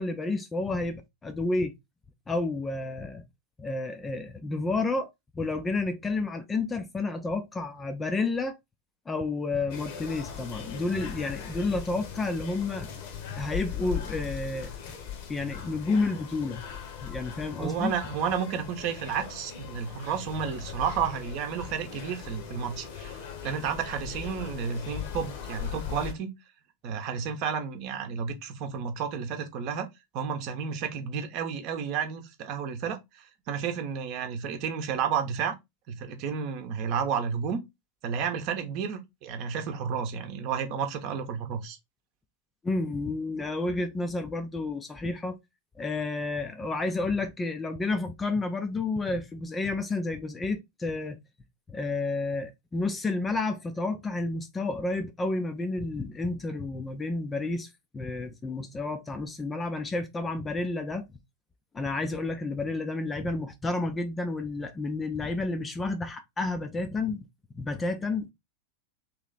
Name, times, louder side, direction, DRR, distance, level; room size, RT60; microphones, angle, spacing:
voice 1, 0.0-1.7 2.3-3.2 3.6-5.1 5.3-8.5 9.1-13.0 13.4-14.7 15.3-16.7 17.0-17.9 42.6-45.4 45.8-51.2 51.7-61.0 61.7-67.3 67.5-68.3, left 3 dB, 15° left, 0.5 m, -30 dB
sound 1, 9.7-26.1, left 8 dB, 50° left, 0.9 m, -39 dB
voice 2, 17.6-26.3 26.8-29.9 30.1-35.5 35.9-37.6 38.0-41.8, right 7 dB, 40° right, 0.9 m, -31 dB
3.1 x 3.0 x 3.8 m
figure-of-eight pair, 90°, 0 cm